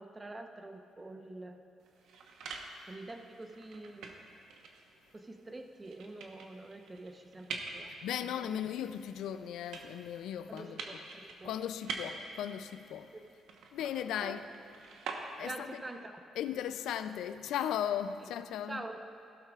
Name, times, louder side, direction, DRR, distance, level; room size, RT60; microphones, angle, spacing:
voice 1, 0.0-1.6 2.9-4.1 5.1-7.9 8.4-8.6 10.5-11.5 13.1-13.3 14.2-14.4 15.4-16.2 18.7-19.1, right 2 dB, 20° right, 0.9 m, -46 dB
sound 1, 1.8-15.7, right 4 dB, 85° right, 1.0 m, -47 dB
voice 2, 8.0-10.8 11.4-13.1 13.7-14.5 15.4-15.8 16.4-18.8, left 10 dB, 85° left, 0.4 m, -37 dB
15.5 x 12.0 x 2.4 m
cardioid pair, 90°, 0 cm